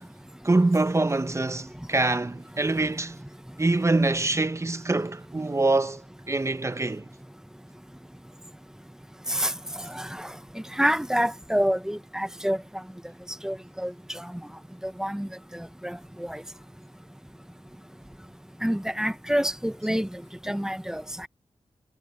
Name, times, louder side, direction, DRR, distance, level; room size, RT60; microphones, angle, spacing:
voice 1, 0.4-3.2 3.6-6.0 6.3-7.0, right 2 dB, 25° right, 1.1 m, -24 dB
voice 2, 9.9-10.3 10.8-12.6 13.4-14.3 15.0-15.3 15.5-16.4 18.6-20.1 20.5-21.3, equal, 5° right, 1.3 m, -27 dB
cardioid pair, 55°, 11 cm